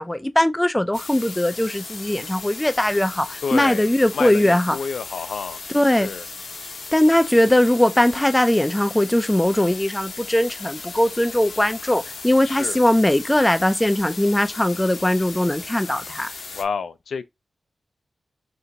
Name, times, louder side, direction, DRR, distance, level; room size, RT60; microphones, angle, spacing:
voice 1, 0.0-4.8 5.7-6.1 6.9-16.3, left 1 dB, 10° left, 0.3 m, -20 dB
sound 1, 0.9-16.6, left 4 dB, 65° left, 0.8 m, -37 dB
voice 2, 3.4-3.9 4.1-5.6 6.0-6.2 12.4-12.8 16.5-17.2, left 5 dB, 85° left, 0.4 m, -29 dB
3.4 x 2.8 x 3.9 m
wide cardioid pair, 140°, 0 cm